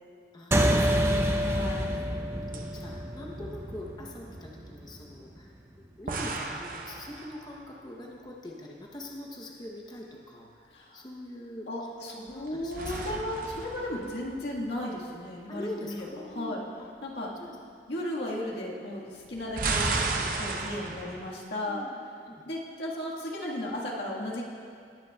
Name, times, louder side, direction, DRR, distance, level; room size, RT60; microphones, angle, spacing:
voice 1, 0.3-1.8 2.1-5.5 5.8-13.2 15.5-16.6 17.4-17.5 17.9-18.0 21.6-22.4, left 1 dB, 25° left, -2 dB, 0.8 m, -44 dB
sound 1, 0.5-5.3, equal, 15° right, 0.5 m, -28 dB
voice 2, 1.4-2.0 10.7-11.0 11.7-16.6 17.0-17.3 17.9-21.8 22.4-24.5, left 1 dB, 80° left, -4 dB, 1.6 m, -35 dB
sound 2, 2.2-2.3 2.5-2.7 6.1-7.7 12.3-14.8 19.3-21.3, right 3 dB, 50° right, 0.7 m, -34 dB
19.5 x 8.2 x 2.3 m, 2.3 s
head